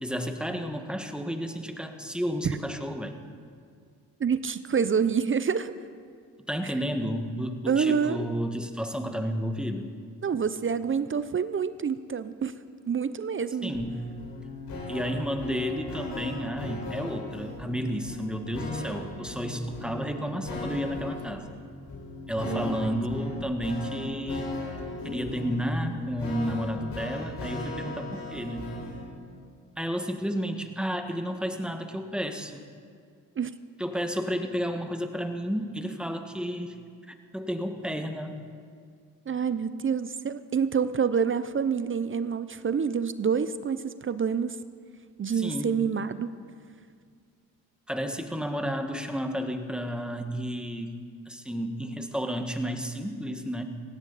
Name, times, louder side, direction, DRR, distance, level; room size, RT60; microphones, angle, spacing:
voice 1, 0.0-3.2 6.5-9.9 13.6-14.0 14.9-21.5 22.3-24.6 25.0-28.7 29.8-32.6 33.8-36.8 37.1-38.4 45.3-45.7 47.9-51.0 51.3-53.6, equal, ahead, 6 dB, 1.6 m, -32 dB
voice 2, 4.2-5.7 7.7-8.3 10.2-12.6 12.9-13.7 22.5-22.9 33.4-33.5 39.3-44.6 45.2-46.4, right 6 dB, 30° right, 13 dB, 0.6 m, -27 dB
sound 1, 13.7-29.0, left 2 dB, 80° left, 5.0 m, -38 dB
17.0 x 16.0 x 4.1 m, 2.1 s
supercardioid pair, 60°, 40 cm